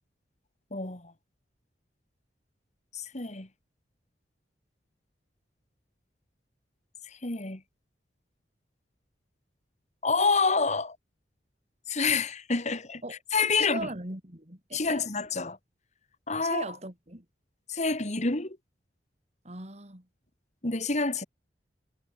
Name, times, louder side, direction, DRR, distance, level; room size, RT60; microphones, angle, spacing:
voice 1, 0.7-1.1 2.9-3.5 7.1-7.6 10.0-11.0 11.9-13.9 14.7-15.6 16.3-16.7 17.7-18.6 20.6-21.2, left 4 dB, 40° left, 2.3 m, -28 dB
voice 2, 13.6-15.0 16.4-17.2 19.5-20.0, right 2 dB, 40° right, 5.1 m, -39 dB
head